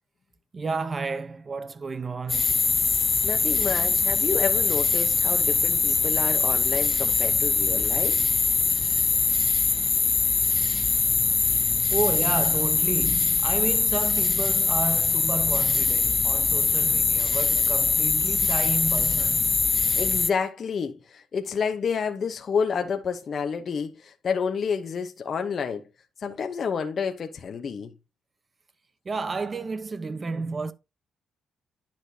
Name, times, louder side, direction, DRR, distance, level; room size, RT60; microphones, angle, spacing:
voice 1, 0.5-2.6 11.9-19.7 29.0-30.7, right 4 dB, 35° right, 0.8 m, -31 dB
sound 1, 2.3-20.3, left 4 dB, 35° left, 0.4 m, -23 dB
voice 2, 3.2-8.2 20.0-25.9 26.2-27.9, left 6 dB, 50° left, 0.9 m, -29 dB
10.5 x 5.8 x 2.8 m
cardioid pair, 90°, 0 cm